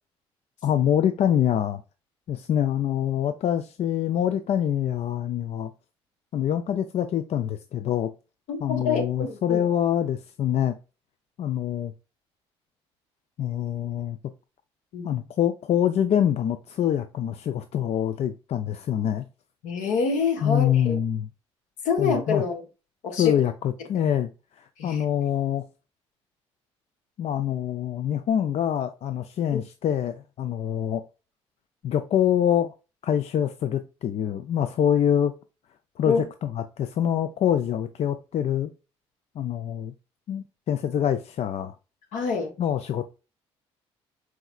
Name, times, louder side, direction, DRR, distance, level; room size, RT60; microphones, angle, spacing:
voice 1, 0.6-1.8 2.3-5.7 6.3-8.1 8.6-10.8 11.4-11.9 13.4-14.2 15.0-19.3 20.4-21.3 22.0-22.4 23.2-25.6 27.2-31.0 31.8-32.7 33.0-35.3 36.0-36.2 36.4-38.7 39.4-39.9 40.3-41.7 42.6-43.1, left 10 dB, 50° left, 0.4 m, -25 dB
voice 2, 8.5-9.6 14.9-15.2 19.6-21.0 21.8-22.6 23.0-23.4 24.8-25.0 29.5-29.6 36.1-36.2 42.1-42.5, left 5 dB, 75° left, 1.0 m, -26 dB
4.7 x 3.2 x 2.3 m
hypercardioid pair, 60°, 13 cm